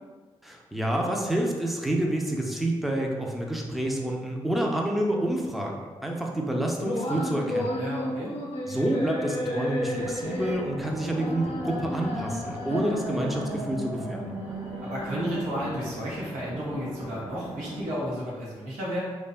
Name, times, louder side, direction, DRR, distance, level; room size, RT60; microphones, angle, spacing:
voice 1, 0.4-7.7 8.7-14.3, right 1 dB, ahead, 0 dB, 0.5 m, -28 dB
sound 1, 6.8-15.8, left 1 dB, 50° left, 0.6 m, -33 dB
voice 2, 7.8-8.3 14.8-19.0, equal, 90° right, -6 dB, 0.7 m, -32 dB
sound 2, 9.9-17.9, right 1 dB, 30° right, 0.8 m, -41 dB
2.6 x 2.1 x 2.4 m, 1.4 s
supercardioid pair, 40°, 13 cm